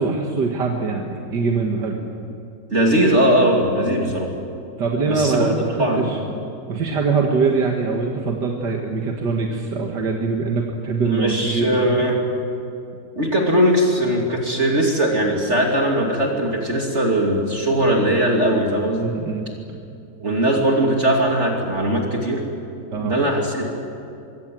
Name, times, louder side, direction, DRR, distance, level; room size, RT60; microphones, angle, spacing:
voice 1, 0.0-2.0 4.8-6.2 6.7-12.0 19.0-19.8 22.9-23.2, right 4 dB, 75° right, 1 dB, 2.3 m, -23 dB
voice 2, 2.7-4.3 5.1-6.1 11.0-12.2 13.2-19.1 20.2-22.4 23.0-23.7, right 1 dB, 40° right, 0 dB, 2.9 m, -20 dB
25.5 x 23.5 x 7.7 m, 2.6 s
omnidirectional pair, 1.9 m